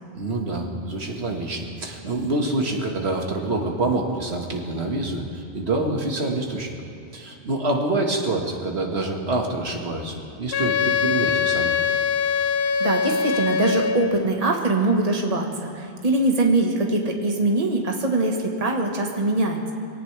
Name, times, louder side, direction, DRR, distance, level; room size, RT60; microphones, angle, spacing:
voice 1, 0.1-6.8 7.1-11.7, right 2 dB, 65° right, 1 dB, 2.0 m, -26 dB
Wind instrument woodwind instrument, 10.5-14.3, left 6 dB, 65° left, 0.8 m, -23 dB
voice 2, 12.6-19.7, right 2 dB, 35° right, 1 dB, 1.5 m, -23 dB
22.5 x 17.5 x 3.4 m, 2.8 s
omnidirectional pair, 1.2 m